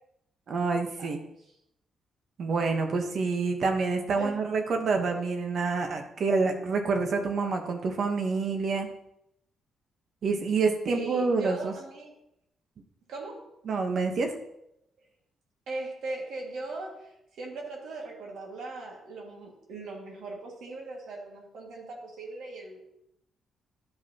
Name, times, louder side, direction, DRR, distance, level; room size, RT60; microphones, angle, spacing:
voice 1, 0.5-1.2 2.4-8.9 10.2-11.7 13.6-14.3, right 4 dB, 45° right, 5 dB, 1.0 m, -27 dB
voice 2, 10.9-12.1 13.1-13.5 15.7-22.8, right 2 dB, 75° right, -1 dB, 2.0 m, -39 dB
11.5 x 5.3 x 2.9 m, 0.79 s
cardioid pair, 160°, 0 cm